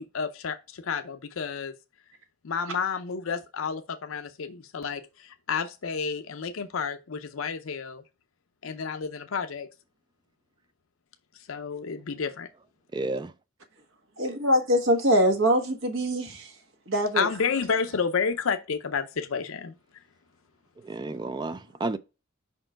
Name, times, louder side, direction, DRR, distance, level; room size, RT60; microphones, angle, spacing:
voice 1, 0.0-1.7 2.4-8.0 8.6-9.7 11.5-12.5 17.1-19.7, left 6 dB, 75° left, 0.6 m, -30 dB
voice 2, 12.9-13.3 20.8-22.0, right 2 dB, 20° right, 0.3 m, -31 dB
voice 3, 14.2-16.4 16.9-17.3, equal, 70° right, 1.5 m, -23 dB
5.5 x 4.4 x 4.4 m
head